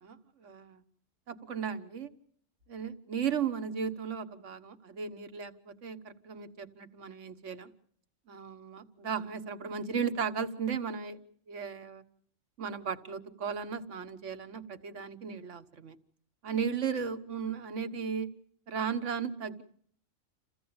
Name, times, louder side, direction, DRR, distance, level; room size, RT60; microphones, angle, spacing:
voice 1, 0.0-0.8 1.3-2.1 2.7-7.7 8.3-11.2 11.5-12.0 12.6-15.9 16.4-18.3 18.7-19.6, right 6 dB, 65° right, 10 dB, 1.6 m, -36 dB
28.0 x 16.0 x 8.7 m, 0.63 s
omnidirectional pair, 1.4 m